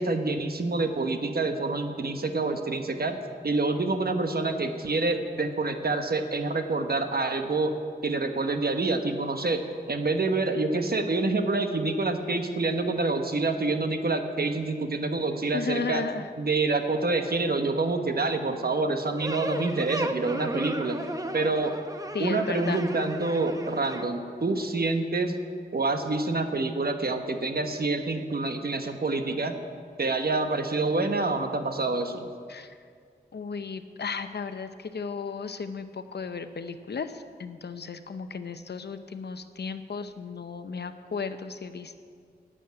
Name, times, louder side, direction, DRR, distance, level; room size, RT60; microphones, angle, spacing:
voice 1, 0.0-3.2 3.4-7.7 8.0-9.6 9.9-16.0 16.4-21.0 21.3-21.7 22.2-25.4 25.7-29.6 30.0-32.3, right 3 dB, 65° right, 6 dB, 1.2 m, -27 dB
voice 2, 15.5-16.3 22.1-22.8 32.5-32.7 33.3-42.0, left 5 dB, 80° left, 10 dB, 0.7 m, -35 dB
sound 1, 19.2-24.0, right 1 dB, 20° right, 1.0 m, -35 dB
12.0 x 8.3 x 9.6 m, 2.1 s
wide cardioid pair, 50°, 17 cm